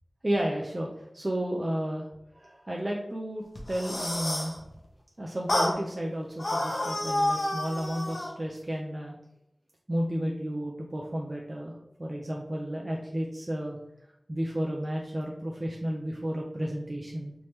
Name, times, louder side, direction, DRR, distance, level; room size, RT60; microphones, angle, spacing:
voice 1, 0.2-4.6 5.2-9.1 9.9-13.8 14.3-17.3, equal, 35° right, -1 dB, 0.5 m, -32 dB
sound 1, 3.6-4.6 5.5-5.8 6.4-8.3, left 1 dB, 80° left, 0.8 m, -29 dB
3.4 x 2.8 x 3.1 m, 0.80 s
wide cardioid pair, 55°, 0 cm